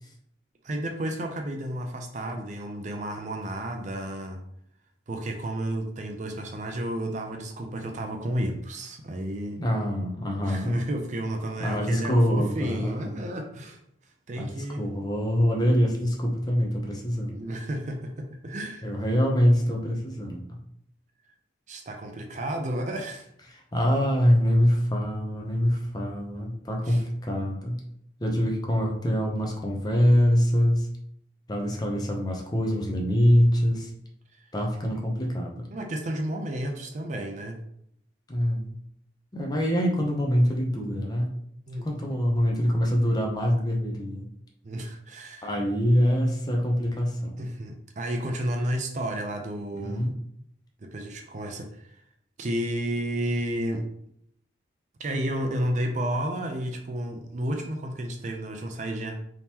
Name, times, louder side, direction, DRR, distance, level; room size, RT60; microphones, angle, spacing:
voice 1, 0.6-4.4 5.1-9.6 10.4-13.8 14.3-14.9 17.3-18.9 21.7-23.3 26.9-27.0 34.3-34.5 35.7-37.6 41.7-41.9 44.6-45.5 47.4-50.0 50.8-52.0 52.4-53.8 55.0-59.1, right 1 dB, 40° right, 4 dB, 0.4 m, -32 dB
voice 2, 9.5-10.8 11.6-13.2 14.4-14.5 14.8-17.4 18.8-20.6 23.5-27.8 28.2-30.9 31.5-33.9 34.5-35.6 38.3-38.7 39.3-41.3 41.8-44.3 45.4-47.4 49.7-50.1, equal, 20° left, 1 dB, 0.6 m, -24 dB
3.5 x 2.9 x 2.8 m, 0.73 s
head